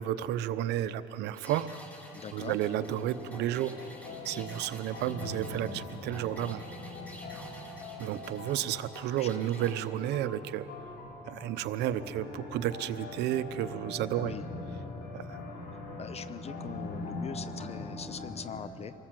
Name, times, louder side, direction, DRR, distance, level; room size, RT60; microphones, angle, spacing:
voice 1, 0.0-1.7 2.3-3.8 4.2-6.6 8.0-10.7 11.3-14.3 15.1-15.4, right 12 dB, 85° right, 12 dB, 0.8 m, -32 dB
sound 1, 1.3-9.8, left 1 dB, 10° left, 3.9 m, -51 dB
sound 2, 1.5-1.9 2.6-18.6, left 2 dB, 70° left, 5.2 m, -42 dB
voice 2, 2.1-2.6 9.2-9.7 14.2-14.4 16.0-18.9, left 7 dB, 40° left, 14 dB, 0.6 m, -42 dB
25.0 x 19.0 x 7.6 m, 2.9 s
cardioid pair, 110°, 17 cm